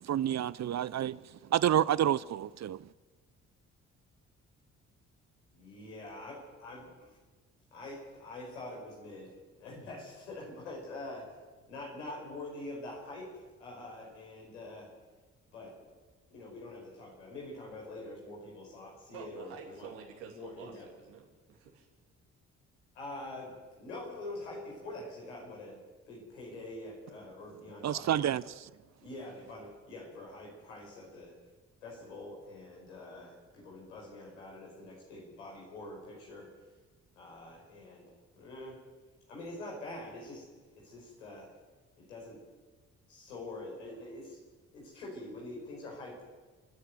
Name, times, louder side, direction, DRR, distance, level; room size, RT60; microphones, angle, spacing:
voice 1, 0.1-1.2 1.5-2.8 27.8-28.4, right 11 dB, 50° right, 0.7 m, -28 dB
voice 2, 5.5-7.1 7.7-9.3 9.6-11.3 11.7-13.3 13.6-14.9 15.5-15.7 16.3-19.9 20.3-20.9 22.9-25.8 26.1-28.3 29.0-31.3 31.8-36.5 37.2-38.8 39.3-41.5 42.0-42.4 43.1-44.4 44.7-46.2, left 2 dB, 90° left, 5.1 m, -45 dB
voice 3, 19.1-21.9, right 6 dB, 85° right, 3.1 m, -49 dB
28.5 x 10.0 x 9.2 m
hypercardioid pair, 40°, 36 cm